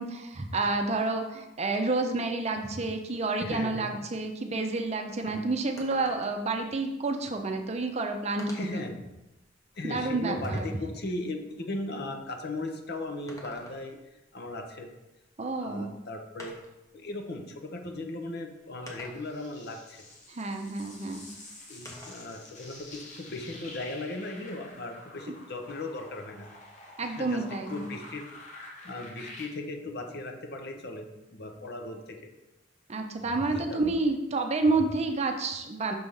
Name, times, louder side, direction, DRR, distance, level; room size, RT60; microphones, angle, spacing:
voice 1, 0.0-8.9 9.8-10.7 15.4-15.9 20.3-21.2 27.0-27.9 32.9-35.9, right 3 dB, 35° right, 5 dB, 0.5 m, -29 dB
voice 2, 3.4-4.0 5.3-5.4 8.5-8.9 9.7-14.0 14.3-14.9 15.6-16.6 16.9-20.0 21.7-26.5 27.0-28.2 28.8-32.3 33.5-34.0, left 2 dB, 55° left, 4 dB, 0.8 m, -37 dB
sound 1, 5.8-6.5 7.6-7.7 8.4-8.9 9.4-10.9 13.1-14.1 15.5-15.6 16.4-16.9 17.9-18.0 18.9-19.5 21.9-22.3 22.7-23.8, left 1 dB, 15° left, 0.9 m, -48 dB
sound 2, 18.8-29.5, left 2 dB, 40° left, 1.3 m, -48 dB
6.1 x 3.4 x 5.4 m, 0.96 s
head